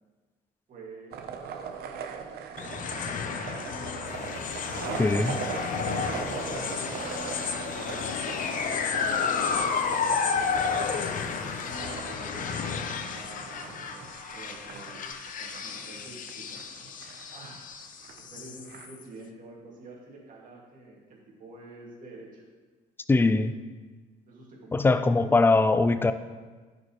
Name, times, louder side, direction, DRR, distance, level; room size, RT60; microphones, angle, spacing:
voice 1, 0.7-2.0 2.5-3.3 4.5-6.1 6.4-6.8 7.7-12.7 13.1-15.0 15.4-16.8 17.3-17.6 18.3-22.4 23.2-23.4 24.3-24.9 25.2-25.5, right 3 dB, 50° right, -3 dB, 2.1 m, -48 dB
sound 1, 1.1-18.9, right 6 dB, 65° right, 0.7 m, -40 dB
sound 2, 2.6-19.0, left 6 dB, 50° left, 0.6 m, -32 dB
sound 3, 4.0-11.8, right 1 dB, 15° right, 1.2 m, -52 dB
voice 2, 5.0-5.4 23.1-23.5 24.7-26.1, left 3 dB, 15° left, 11 dB, 0.4 m, -21 dB
11.0 x 5.2 x 3.1 m, 1.4 s
cardioid pair, 110°, 17 cm